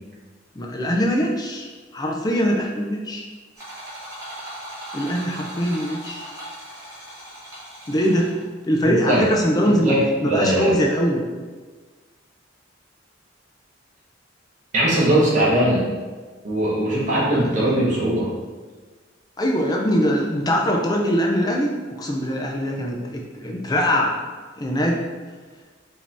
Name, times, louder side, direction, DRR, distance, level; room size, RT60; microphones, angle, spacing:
voice 1, 0.6-3.2 4.9-6.3 7.9-8.4 8.7-9.9 10.2-11.2 17.2-17.3 17.7-17.8 19.4-21.7 22.0-24.2 24.6-25.1, equal, 20° left, 0 dB, 0.4 m, -22 dB
sound 1, 3.6-8.5, right 1 dB, 20° right, 1.4 m, -38 dB
voice 2, 8.8-9.2 9.6-10.7 14.7-15.9 16.4-18.3, right 1 dB, 40° right, -6 dB, 0.9 m, -20 dB
5.0 x 2.8 x 3.3 m, 1.4 s
head